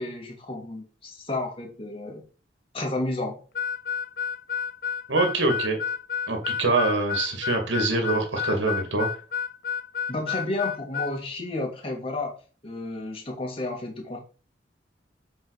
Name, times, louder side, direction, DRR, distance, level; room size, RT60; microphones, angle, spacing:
voice 1, 0.0-2.2 2.7-3.4 10.1-12.4 12.6-14.2, left 2 dB, 30° left, 0 dB, 2.3 m, -31 dB
Harmonica, 3.5-11.1, left 7 dB, 50° left, 0.5 m, -30 dB
voice 2, 5.1-5.8 6.3-9.1, right 3 dB, 85° right, 3 dB, 2.3 m, -24 dB
7.9 x 5.2 x 4.9 m, 0.36 s
head